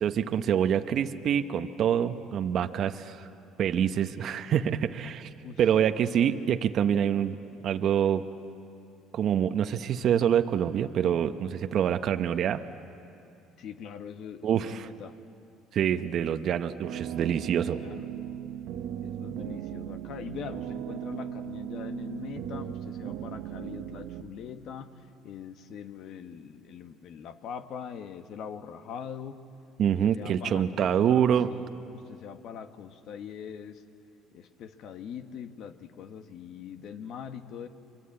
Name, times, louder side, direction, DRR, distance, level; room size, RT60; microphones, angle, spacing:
voice 1, 0.0-3.3 3.6-5.3 5.6-7.4 7.6-8.2 9.1-12.6 14.4-14.9 15.7-17.8 29.8-31.5, right 9 dB, 55° right, 8 dB, 0.9 m, -26 dB
voice 2, 13.6-15.2 17.4-18.1 19.0-24.9 25.2-29.4 30.0-31.6 32.1-33.8 34.3-37.7, left 7 dB, 60° left, 9 dB, 1.5 m, -42 dB
sound 1, 16.8-24.2, right 10 dB, 75° right, 1.0 m, -37 dB
29.0 x 23.0 x 8.7 m, 2.6 s
supercardioid pair, 90°, 0 cm